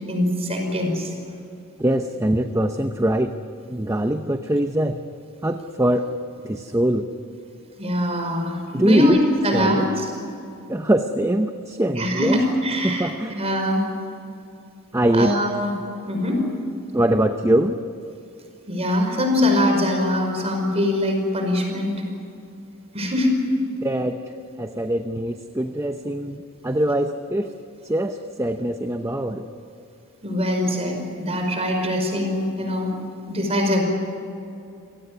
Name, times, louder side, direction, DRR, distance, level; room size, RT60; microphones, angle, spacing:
voice 1, 0.1-1.1 7.8-10.1 12.0-13.9 15.1-15.7 16.0-16.4 18.7-21.9 22.9-23.4 30.2-32.9 33.3-33.8, left 1 dB, 30° right, 3 dB, 5.2 m, -22 dB
voice 2, 1.8-3.4 3.7-5.0 5.4-6.1 6.4-7.1 8.7-9.2 9.5-9.9 10.7-12.4 12.8-13.4 14.9-15.3 16.9-17.8 23.8-27.5 27.8-29.5, right 1 dB, 15° right, 7 dB, 0.8 m, -22 dB
28.5 x 18.0 x 9.6 m, 2.6 s
head